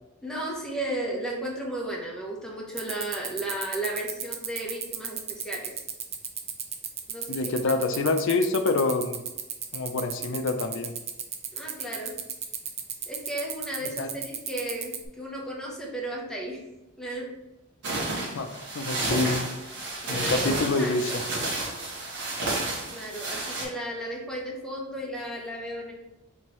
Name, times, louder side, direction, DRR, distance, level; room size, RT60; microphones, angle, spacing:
voice 1, 0.2-5.7 7.1-7.7 11.5-12.2 13.1-16.6 17.0-17.3 20.0-21.2 22.9-25.9, right 1 dB, 5° left, -3 dB, 0.9 m, -34 dB
sound 1, 2.8-15.1, right 8 dB, 30° right, 0.4 m, -33 dB
voice 2, 7.3-9.2 9.7-10.9 14.0-14.1 18.3-19.4 20.1-21.2, left 3 dB, 60° left, 8 dB, 0.4 m, -26 dB
sound 2, 17.8-23.6, right 2 dB, 55° right, 1.2 m, -31 dB
4.5 x 3.5 x 3.1 m, 0.98 s
head